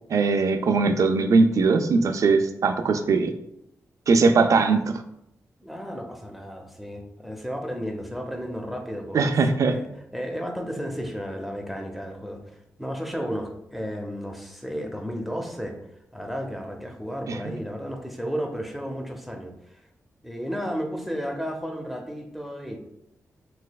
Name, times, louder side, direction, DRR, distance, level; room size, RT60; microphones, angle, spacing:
voice 1, 0.1-3.3 4.1-5.0 9.1-9.7 17.3-17.4, right 4 dB, 65° right, 8 dB, 0.3 m, -20 dB
voice 2, 5.6-15.8 16.1-19.8 20.2-22.8, equal, ahead, 2 dB, 0.6 m, -33 dB
3.3 x 3.1 x 2.2 m, 0.79 s
cardioid pair, 60°, 6 cm